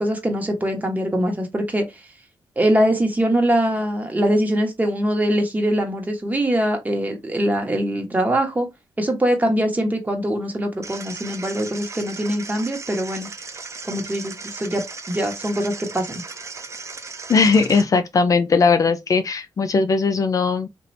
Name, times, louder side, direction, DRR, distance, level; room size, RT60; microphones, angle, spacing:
voice 1, 0.0-1.8 2.6-8.7 9.0-13.3 13.8-16.2, right 1 dB, 20° right, 1.2 m, -22 dB
sound 1, 10.8-17.8, right 4 dB, 40° right, 0.7 m, -36 dB
voice 2, 17.3-20.7, left 4 dB, 50° left, 0.4 m, -18 dB
2.6 x 2.5 x 3.2 m
cardioid pair, 70°, 8 cm